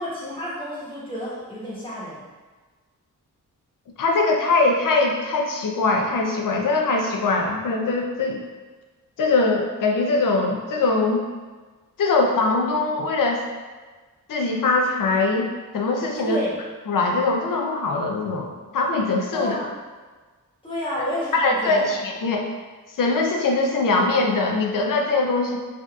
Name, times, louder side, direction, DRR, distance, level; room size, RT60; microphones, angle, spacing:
voice 1, 0.0-2.2 16.1-16.6 19.3-19.7 20.6-21.9, equal, 15° left, -9 dB, 1.3 m, -30 dB
voice 2, 4.0-8.4 9.2-11.2 12.0-13.4 14.3-16.4 16.9-19.6 21.0-21.1 21.3-22.5 23.0-25.6, left 3 dB, 80° left, 2 dB, 0.6 m, -22 dB
4.8 x 2.8 x 2.3 m, 1.4 s
wide cardioid pair, 165°, 32 cm